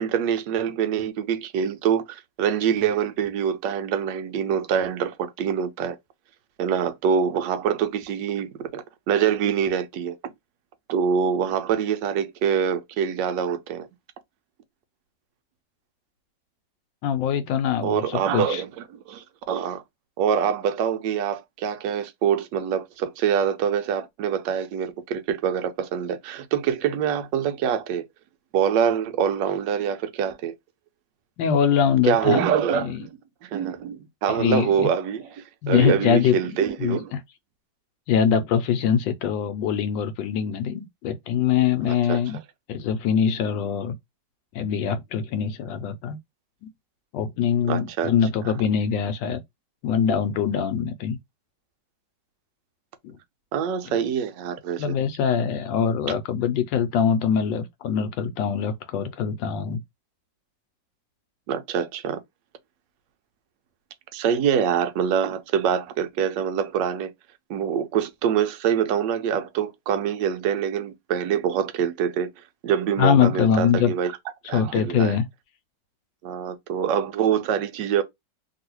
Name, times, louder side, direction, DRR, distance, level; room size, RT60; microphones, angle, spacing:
voice 1, 0.0-6.0 6.6-10.3 10.9-13.9 17.8-19.8 20.2-28.0 28.5-30.5 32.0-37.1 41.9-42.2 47.7-48.1 53.5-55.0 61.5-62.2 64.1-67.1 67.5-72.3 72.6-74.1 74.5-75.2 76.2-78.0, right 8 dB, 75° right, 1.2 m, -25 dB
voice 2, 17.0-18.0 18.3-18.6 31.4-32.5 32.8-33.0 34.3-34.9 35.6-36.4 36.8-37.2 38.1-42.4 42.7-43.9 44.5-46.2 46.6-46.7 47.1-49.4 49.8-51.2 53.0-53.1 54.8-59.8 73.0-73.9 74.5-75.3, left 8 dB, 85° left, 1.3 m, -23 dB
3.0 x 2.7 x 2.9 m
omnidirectional pair, 2.0 m